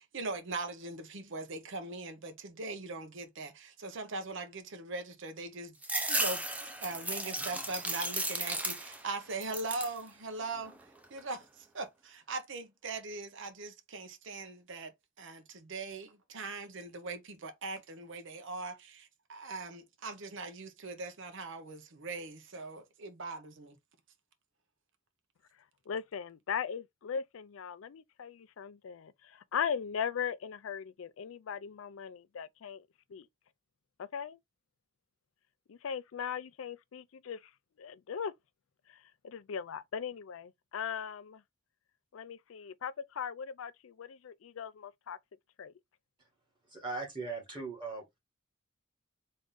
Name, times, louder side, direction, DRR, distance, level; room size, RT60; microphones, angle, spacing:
voice 1, 0.0-5.8 6.0-10.8 11.1-14.9 15.2-23.8, right 3 dB, 65° right, 0.8 m, -41 dB
sound 1, 5.8-9.1 9.4-10.0 10.5-11.2, right 1 dB, 5° right, 0.6 m, -35 dB
voice 2, 25.9-32.8 33.1-33.3 34.0-34.4 35.7-37.4 37.8-38.3 39.2-41.4 42.1-45.2 45.6-45.7, left 7 dB, 80° left, 0.4 m, -39 dB
voice 3, 46.7-48.0, right 3 dB, 25° right, 1.8 m, -39 dB
3.7 x 2.6 x 3.7 m
head